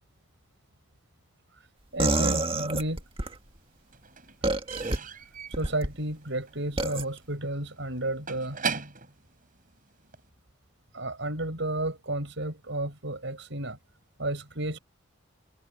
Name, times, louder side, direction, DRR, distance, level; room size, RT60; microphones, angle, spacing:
voice 1, 1.9-3.0 5.5-8.6 10.9-13.8 14.2-14.8, right 1 dB, 65° right, 7.8 m, -32 dB
sound 1, 2.0-3.3 4.4-5.0 5.5-5.9 6.8-7.0, right 2 dB, 30° right, 1.8 m, -27 dB
Slam / Squeak / Wood, 2.7-3.3 3.5-10.3, right 5 dB, 45° right, 7.2 m, -39 dB
head